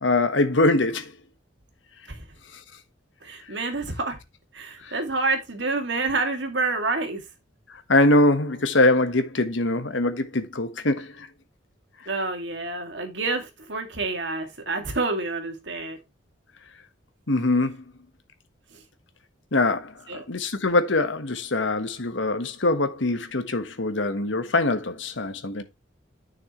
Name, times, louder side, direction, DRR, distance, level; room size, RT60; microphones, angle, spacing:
voice 1, 0.0-1.1 4.8-4.9 7.9-11.3 17.3-17.8 19.5-25.6, left 2 dB, 80° left, 1.4 m, -23 dB
voice 2, 3.2-4.2 4.5-7.2 12.1-16.0 20.1-20.2, right 3 dB, 70° right, 2.3 m, -28 dB
9.8 x 6.5 x 3.1 m
head